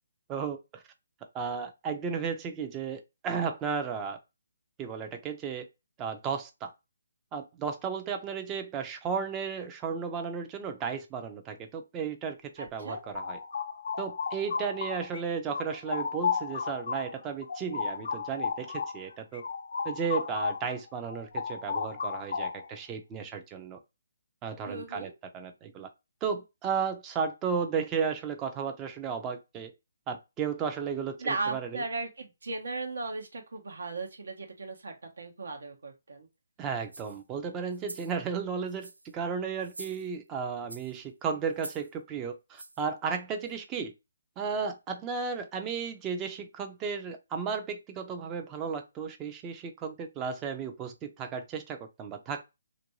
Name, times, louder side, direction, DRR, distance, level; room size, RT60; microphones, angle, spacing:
voice 1, 0.3-0.8 1.3-4.2 4.8-5.7 6.0-6.7 7.3-13.4 14.0-19.4 19.8-23.8 24.4-25.9 26.2-29.7 30.1-31.8 36.6-43.9 44.4-52.4, right 6 dB, 20° right, 0.5 m, -34 dB
voice 2, 12.6-13.0 24.7-25.1 31.2-36.3, right 3 dB, 70° right, 0.9 m, -36 dB
sound 1, 12.7-15.2 15.5-20.7 21.1-22.8, left 6 dB, 60° left, 0.3 m, -34 dB
sound 2, 36.8-37.2 37.7-38.2 38.7-39.1 39.6-40.3 40.7-41.0 41.5-41.9 42.6-42.9 43.5-43.6, right 2 dB, 90° right, 0.5 m, -46 dB
2.5 x 2.2 x 3.0 m
figure-of-eight pair, 150°, 0 cm